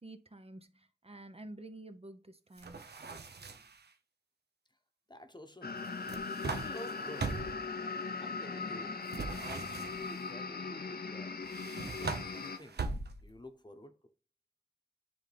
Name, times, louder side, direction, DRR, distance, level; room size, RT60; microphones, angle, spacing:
voice 1, 0.0-2.8, right 2 dB, 40° right, 0.8 m, -50 dB
sound 1, 2.6-3.8 5.8-7.7 9.1-10.2 11.4-13.4, right 4 dB, 90° right, 0.7 m, -40 dB
voice 2, 5.1-7.7 8.2-12.8 13.2-13.9, left 1 dB, 25° left, 1.0 m, -51 dB
sound 2, 5.6-12.6, left 4 dB, 70° left, 0.7 m, -39 dB
9.8 x 3.6 x 3.4 m
wide cardioid pair, 55°, 17 cm